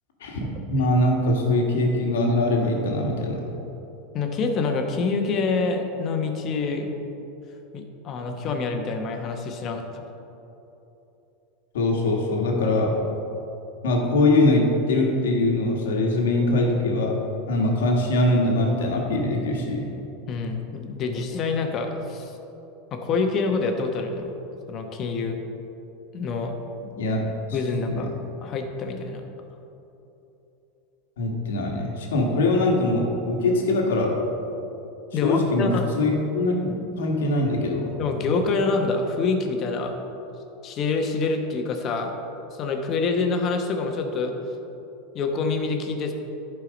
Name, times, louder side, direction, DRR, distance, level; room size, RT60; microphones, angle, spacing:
voice 1, 0.2-3.4 11.7-12.9 13.8-17.1 17.5-19.9 26.9-27.2 27.9-28.0 31.2-34.1 35.2-35.7 36.0-37.9, left 2 dB, 85° left, 0 dB, 1.5 m, -22 dB
voice 2, 4.1-6.9 7.7-10.0 20.3-22.4 22.9-24.3 24.7-25.4 26.1-26.5 27.5-28.1 28.4-29.2 35.1-35.9 38.0-39.9 40.6-42.1 42.5-44.3 45.1-46.1, left 4 dB, 40° left, 4 dB, 1.1 m, -26 dB
11.0 x 4.6 x 5.2 m, 3.0 s
hypercardioid pair, 110°, 0 cm